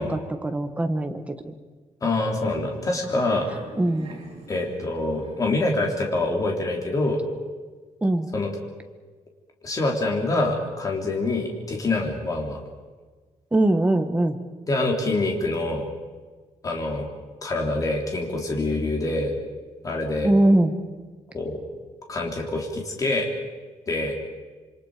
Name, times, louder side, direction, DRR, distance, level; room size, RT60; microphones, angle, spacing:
voice 1, 0.0-1.5 3.8-4.1 8.0-8.3 13.5-14.4 20.2-20.8, right 1 dB, 10° right, 7 dB, 1.3 m, -22 dB
voice 2, 2.0-3.5 4.5-7.2 8.3-8.5 9.6-12.6 14.7-15.8 16.6-17.1 17.4-19.3 19.8-20.3 21.3-21.6 22.1-23.3 23.9-24.1, left 2 dB, 25° left, 0 dB, 3.5 m, -25 dB
sound 1, 2.5-5.6, right 4 dB, 50° right, 5.5 m, -44 dB
27.0 x 24.5 x 5.0 m, 1.4 s
wide cardioid pair, 180°, 13 cm